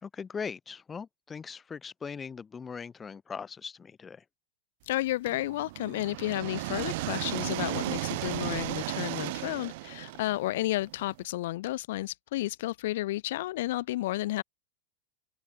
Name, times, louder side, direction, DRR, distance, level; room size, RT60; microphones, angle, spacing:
voice 1, 0.0-4.2, left 6 dB, 20° left, 4.8 m, -40 dB
voice 2, 4.9-14.4, left 16 dB, 70° left, 1.0 m, -32 dB
sound 1, 5.3-11.1, right 21 dB, 65° right, 3.2 m, -35 dB
open air
hypercardioid pair, 95°, 0 cm